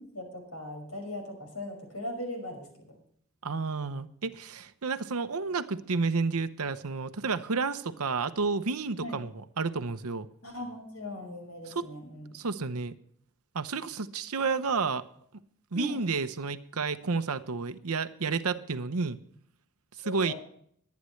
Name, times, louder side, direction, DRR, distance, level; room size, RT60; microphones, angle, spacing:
voice 1, 0.1-3.0 9.0-9.2 10.4-12.4 15.7-16.0 20.0-20.4, left 1 dB, 80° left, 3 dB, 5.9 m, -39 dB
voice 2, 3.4-9.3 9.6-10.3 11.7-11.8 12.3-13.0 13.5-15.1 15.7-19.2 20.0-20.3, right 4 dB, 80° right, 12 dB, 0.9 m, -31 dB
23.0 x 9.5 x 3.2 m, 0.64 s
head